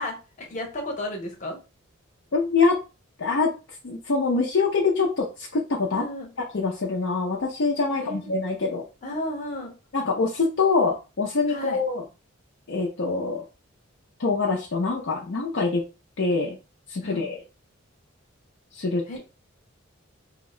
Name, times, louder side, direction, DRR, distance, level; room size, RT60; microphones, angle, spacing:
voice 1, 0.0-1.6 5.9-6.3 7.9-8.2 9.0-9.7 11.5-11.8 17.0-17.3 19.1-19.2, left 1 dB, 35° left, 1 dB, 0.8 m, -33 dB
voice 2, 2.3-2.8 3.2-3.5 3.8-6.0 6.5-8.8 9.9-12.0 12.7-13.5 14.2-15.8 16.2-16.6 16.9-17.4 18.7-19.2, left 4 dB, 60° left, -1 dB, 0.5 m, -24 dB
2.8 x 2.1 x 3.7 m, 0.31 s
head